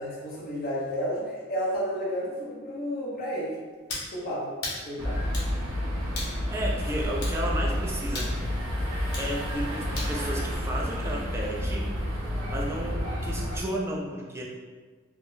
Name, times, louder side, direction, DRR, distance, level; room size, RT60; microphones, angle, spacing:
voice 1, 0.0-3.5 4.1-4.5 4.9-5.2, equal, 45° left, -7 dB, 0.7 m, -31 dB
sound 1, 3.9-4.1 4.6-4.8 5.3-5.5 6.2-6.4 7.2-7.4 8.2-8.4 9.1-9.3 10.0-10.2, left 2 dB, 80° left, 0.8 m, -35 dB
sound 2, 5.0-13.6, equal, 70° right, 0.6 m, -30 dB
voice 2, 6.5-8.4 9.2-11.9 12.5-14.4, right 1 dB, 10° right, -2 dB, 0.3 m, -33 dB
3.5 x 2.0 x 2.5 m, 1.5 s
head